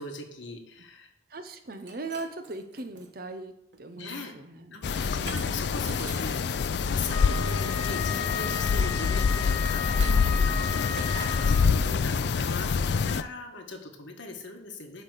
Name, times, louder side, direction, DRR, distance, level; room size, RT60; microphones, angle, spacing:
voice 1, 0.0-1.1 4.0-4.3 4.7-9.9 10.5-10.6 10.9-15.0, left 3 dB, 75° left, 4 dB, 1.3 m, -40 dB
voice 2, 1.3-3.5 3.8-4.8 5.0-5.5 10.0-10.6, right 3 dB, 50° right, 7 dB, 0.8 m, -39 dB
Shatter, 1.7-3.1 3.7-4.1 5.3-6.4 9.6-10.6 11.0-11.6, right 5 dB, 70° right, 1.0 m, -44 dB
sound 1, 4.8-13.2, left 5 dB, 60° left, 0.4 m, -26 dB
Wind instrument woodwind instrument, 7.1-11.9, left 7 dB, 35° left, 1.7 m, -35 dB
9.8 x 3.5 x 6.4 m, 0.78 s
head